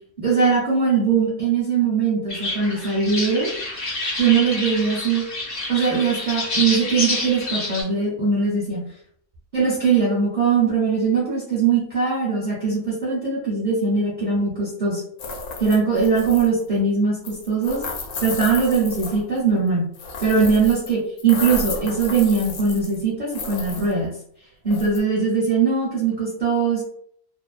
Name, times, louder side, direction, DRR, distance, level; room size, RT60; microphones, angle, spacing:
voice 1, 0.2-3.5 4.2-5.2 5.7-8.8 9.5-15.0 15.6-17.8 18.2-19.9 20.2-24.1 24.6-26.8, right 5 dB, 45° right, -7 dB, 0.6 m, -21 dB
sound 1, 2.3-7.8, left 2 dB, 50° left, 0.8 m, -28 dB
sound 2, 15.2-16.6 17.3-19.4 19.9-20.9 21.2-23.0 23.3-23.9 24.7-25.0, left 4 dB, 80° left, 1.0 m, -32 dB
2.6 x 2.0 x 2.3 m, 0.65 s
omnidirectional pair, 1.5 m